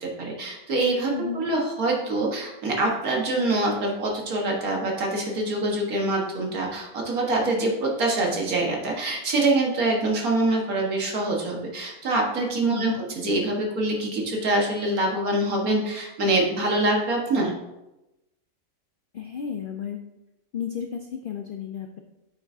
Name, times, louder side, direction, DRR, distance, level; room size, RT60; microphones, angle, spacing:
voice 1, 0.0-17.5, right 2 dB, 80° right, -1 dB, 1.9 m, -25 dB
voice 2, 1.1-1.5 12.7-13.0 19.1-20.0 20.5-22.0, left 8 dB, 70° left, 4 dB, 0.5 m, -32 dB
8.5 x 6.0 x 2.7 m, 0.95 s
omnidirectional pair, 1.5 m